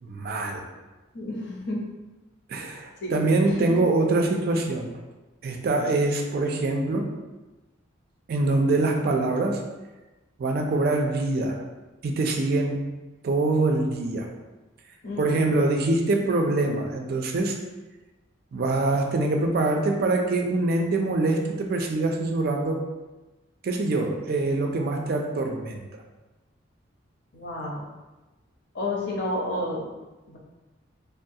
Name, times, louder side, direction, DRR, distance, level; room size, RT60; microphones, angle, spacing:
voice 1, 0.0-0.7 2.5-4.9 5.4-7.1 8.3-9.6 10.4-11.6 12.0-12.8 13.2-14.3 15.2-17.6 18.5-22.8 23.6-25.8, right 2 dB, 50° right, 3 dB, 0.3 m, -24 dB
voice 2, 1.1-1.8 3.0-3.2 3.6-3.7 15.0-15.5 27.3-27.9 28.7-29.9 30.3-30.4, left 1 dB, 55° left, -2 dB, 0.7 m, -30 dB
3.5 x 2.3 x 2.7 m, 1.1 s
head